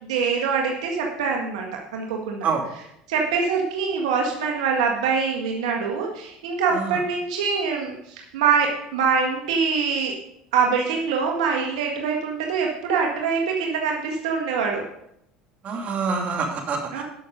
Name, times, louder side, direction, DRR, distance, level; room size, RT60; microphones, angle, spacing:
voice 1, 0.0-2.5 3.1-10.1 10.5-14.8 16.9-17.0, right 5 dB, 85° right, 1 dB, 1.7 m, -24 dB
voice 2, 15.6-17.0, right 5 dB, 45° right, 2 dB, 2.7 m, -26 dB
13.0 x 6.4 x 5.2 m, 0.76 s
supercardioid pair, 90°, 3 cm